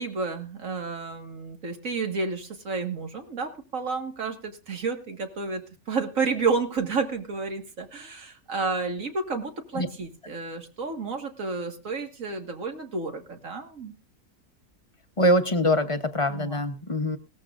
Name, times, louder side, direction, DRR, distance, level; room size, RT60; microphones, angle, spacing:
voice 1, 0.0-13.9 16.3-16.6, right 4 dB, 65° right, 5 dB, 2.1 m, -31 dB
voice 2, 15.2-17.2, equal, 25° left, 7 dB, 0.8 m, -23 dB
18.5 x 13.5 x 2.5 m, 0.32 s
omnidirectional pair, 1.5 m